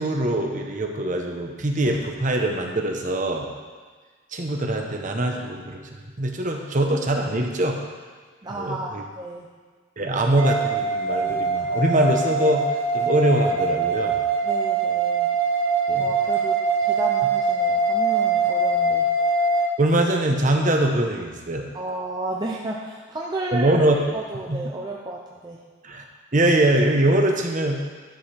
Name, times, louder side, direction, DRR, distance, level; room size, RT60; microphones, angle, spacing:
voice 1, 0.0-3.5 4.3-5.9 6.2-7.8 8.6-9.0 10.0-12.7 12.9-14.2 15.9-16.1 19.8-21.7 23.5-24.0 24.5-24.7 25.8-26.0 26.3-27.8, right 1 dB, 35° right, 2 dB, 1.0 m, -22 dB
voice 2, 8.4-9.5 14.4-15.3 16.0-19.1 21.7-23.9 24.1-25.6, right 2 dB, 20° right, -3 dB, 0.6 m, -32 dB
sound 1, 10.4-19.7, right 3 dB, 85° right, 0.9 m, -23 dB
11.5 x 5.1 x 5.8 m, 1.5 s
head